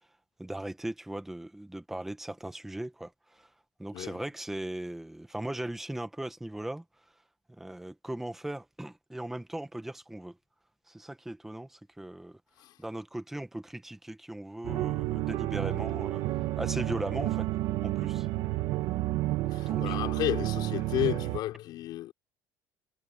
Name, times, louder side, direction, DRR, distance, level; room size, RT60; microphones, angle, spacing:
voice 1, 0.4-3.5 3.8-6.8 7.6-10.3 10.9-12.4 12.8-17.5 17.8-18.3 19.7-20.2, right 1 dB, 5° right, 1.1 m, -38 dB
voice 2, 3.9-4.2 12.6-12.8 19.5-22.1, left 14 dB, 50° left, 4.5 m, -32 dB
sound 1, 14.6-21.4, right 16 dB, 55° right, 1.2 m, -30 dB
cardioid pair, 170°, 9 cm